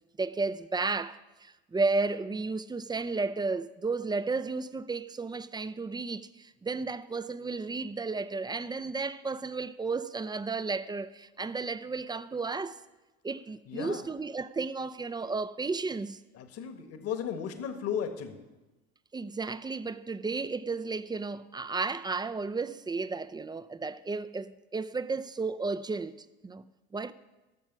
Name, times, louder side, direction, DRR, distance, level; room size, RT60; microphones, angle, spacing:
voice 1, 0.0-12.8 13.2-16.2 19.1-26.6 26.9-27.1, right 3 dB, 15° right, 0.5 m, -33 dB
voice 2, 13.7-14.0 16.3-18.4, left 8 dB, 50° left, 1.5 m, -35 dB
17.0 x 7.2 x 6.0 m
hypercardioid pair, 65°, 32 cm